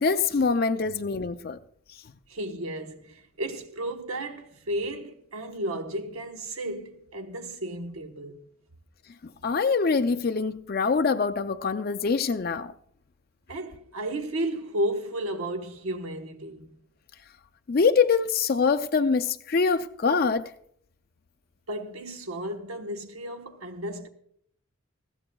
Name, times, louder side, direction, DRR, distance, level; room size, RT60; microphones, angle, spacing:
voice 1, 0.0-1.6 1.9-2.0 9.4-12.7 17.7-20.5, left 5 dB, 45° left, 0.4 m, -24 dB
voice 2, 2.3-8.4 13.5-16.8 21.7-24.1, right 1 dB, 85° right, 1.1 m, -33 dB
20.5 x 15.0 x 2.3 m
head